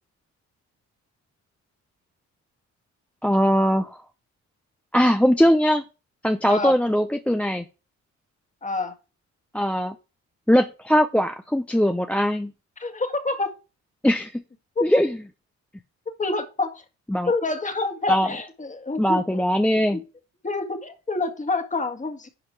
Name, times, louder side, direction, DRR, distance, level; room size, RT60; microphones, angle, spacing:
voice 1, 3.2-4.0 4.9-5.8 6.2-7.6 9.5-9.9 10.5-12.5 14.0-14.4 14.8-15.2 17.1-17.3 18.1-18.3 19.0-20.0, equal, 5° left, 0.6 m, -20 dB
voice 2, 8.6-8.9 12.8-13.5 14.7-14.9 16.2-16.8 17.3-19.4 19.9-20.0 20.4-22.3, left 3 dB, 25° left, 1.8 m, -27 dB
10.5 x 5.0 x 4.6 m
cardioid pair, 90°, 30 cm